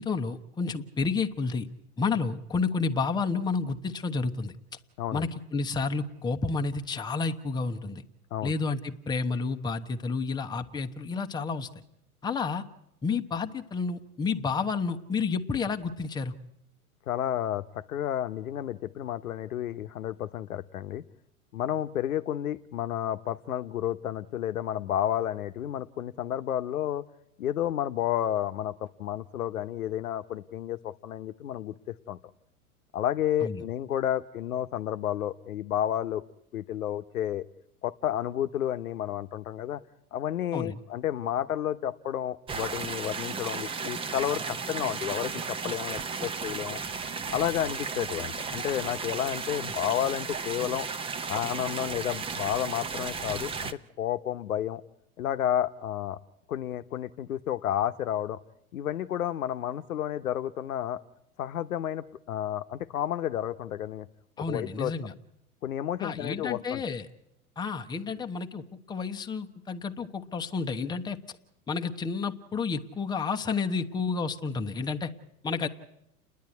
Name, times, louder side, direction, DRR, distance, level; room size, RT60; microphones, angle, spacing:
voice 1, 0.0-1.7 2.0-4.5 5.1-8.0 8.4-11.7 12.2-12.6 13.0-16.3 33.4-33.6 40.5-40.8 64.4-65.1 66.0-67.1 67.6-71.2 71.7-75.1 75.4-75.7, left 4 dB, 10° left, 4 dB, 1.0 m, -30 dB
voice 2, 17.1-21.0 21.5-27.0 27.4-32.2 32.9-36.2 36.5-37.4 37.8-39.8 40.1-46.8 47.3-50.9 51.3-54.8 55.2-56.2 56.5-58.4 58.7-61.0 61.4-64.1 64.5-64.9 65.6-66.8, left 11 dB, 70° left, 11 dB, 1.0 m, -31 dB
sound 1, 42.5-53.7, right 5 dB, 10° right, 0.7 m, -34 dB
30.0 x 10.5 x 9.6 m, 0.81 s
figure-of-eight pair, 100°, 45 cm